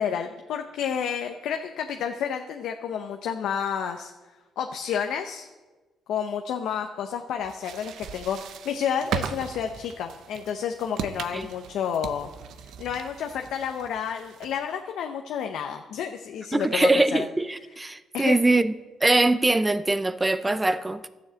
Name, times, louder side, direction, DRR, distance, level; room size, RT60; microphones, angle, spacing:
voice 1, 0.0-4.1 4.6-5.5 6.1-12.3 12.6-17.3 18.1-18.4, left 8 dB, 80° left, 0.7 m, -30 dB
sound 1, 7.4-14.7, right 8 dB, 75° right, 0.7 m, -38 dB
voice 2, 16.5-18.7 19.0-21.1, right 2 dB, 15° right, 0.5 m, -22 dB
12.5 x 7.2 x 7.6 m
cardioid pair, 90°, 0 cm